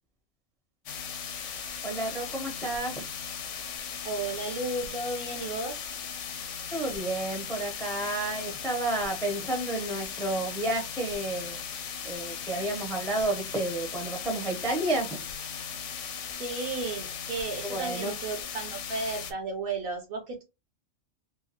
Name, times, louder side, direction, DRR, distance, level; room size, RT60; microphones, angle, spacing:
sound 1, 0.9-19.3, left 7 dB, 80° left, 0.9 m, -38 dB
voice 1, 1.8-3.0 6.7-11.6 12.0-15.1 17.6-18.1, right 2 dB, 5° left, 0.4 m, -31 dB
voice 2, 4.0-5.9 16.3-20.4, right 3 dB, 60° right, 0.7 m, -34 dB
2.8 x 2.3 x 2.8 m
omnidirectional pair, 1.3 m